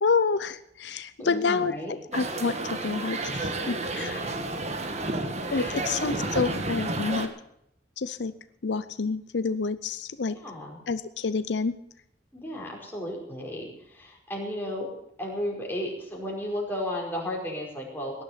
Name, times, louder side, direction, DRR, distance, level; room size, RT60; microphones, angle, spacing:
voice 1, 0.0-1.7 2.1-4.2 5.5-7.3 8.0-8.3 8.6-10.4 10.9-11.7, left 4 dB, 80° left, 13 dB, 0.6 m, -28 dB
voice 2, 1.2-2.0 4.0-4.3 5.5-6.4 10.4-10.8 12.3-14.9 15.2-18.2, left 1 dB, 10° left, -2 dB, 5.0 m, -34 dB
sound 1, 2.1-7.3, right 2 dB, 40° right, 1.6 m, -31 dB
18.0 x 11.0 x 5.8 m, 0.78 s
head